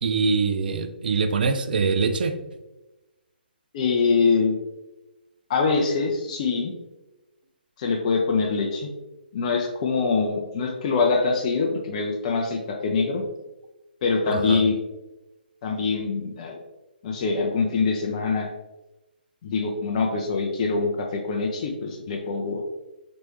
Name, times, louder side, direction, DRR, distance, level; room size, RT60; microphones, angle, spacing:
voice 1, 0.0-2.3 14.3-14.6, right 4 dB, 60° right, 8 dB, 0.5 m, -23 dB
voice 2, 3.7-4.5 5.5-6.7 7.8-8.9 9.3-13.2 14.0-14.8 15.6-16.6 17.0-18.5 19.4-22.6, left 4 dB, 40° left, 1 dB, 0.6 m, -24 dB
4.3 x 3.2 x 3.0 m, 1.0 s
figure-of-eight pair, 135°, 6 cm